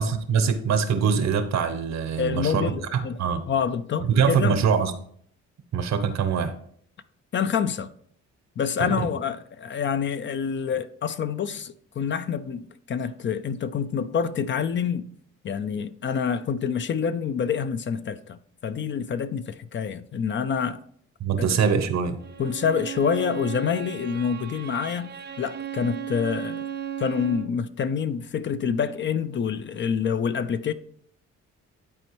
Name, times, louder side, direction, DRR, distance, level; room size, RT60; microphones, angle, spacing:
voice 1, 0.0-3.5 4.0-4.9 5.7-6.6 8.8-9.1 21.2-22.2, right 6 dB, 65° right, 0.9 m, -23 dB
voice 2, 2.2-3.2 3.5-4.6 7.3-7.9 8.6-15.1 15.4-20.8 21.5-21.6 22.4-26.6 27.0-30.7, left 7 dB, 40° left, 0.4 m, -27 dB
Bowed string instrument, 22.2-27.6, right 9 dB, 35° right, 0.5 m, -35 dB
11.0 x 4.3 x 3.0 m
cardioid pair, 90°, 30 cm